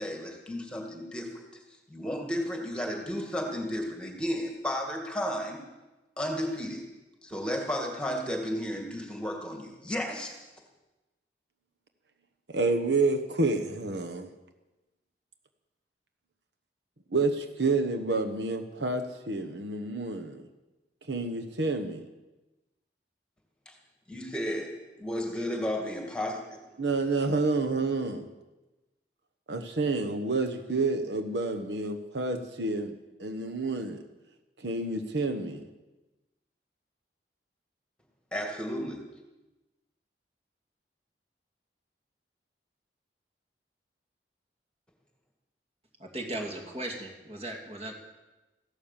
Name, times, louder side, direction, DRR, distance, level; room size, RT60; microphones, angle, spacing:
voice 1, 0.0-1.4 1.9-5.6 6.2-6.8 7.2-10.4 23.7-23.8 24.1-26.6 38.3-39.0, equal, 5° left, 1 dB, 2.2 m, -33 dB
voice 2, 12.5-14.3 17.1-20.4 21.1-22.0 26.8-28.3 29.5-32.9 33.2-34.0 34.6-35.6, right 3 dB, 80° right, 6 dB, 1.2 m, -29 dB
voice 3, 46.0-47.9, right 1 dB, 35° right, 2 dB, 2.5 m, -37 dB
15.5 x 12.0 x 7.3 m, 1.1 s
head